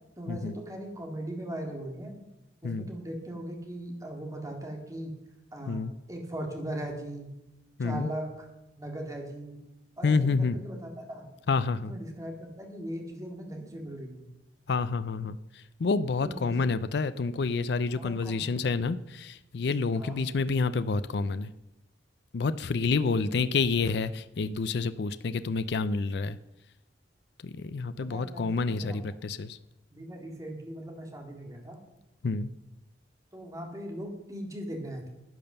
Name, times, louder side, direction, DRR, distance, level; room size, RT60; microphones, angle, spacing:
voice 1, 0.2-2.2 2.6-5.1 5.5-5.8 6.1-7.3 7.8-8.5 8.8-9.6 10.0-11.3 11.9-14.3 16.2-16.6 17.9-18.5 19.9-20.2 23.0-23.3 28.0-29.0 29.9-31.8 33.3-35.1, right 1 dB, 20° right, 2 dB, 2.2 m, -39 dB
voice 2, 7.8-8.1 10.0-10.6 11.5-11.9 14.7-21.5 22.3-26.4 27.4-29.6 32.2-32.5, left 4 dB, 65° left, 13 dB, 0.5 m, -28 dB
10.5 x 8.8 x 6.7 m, 0.93 s
head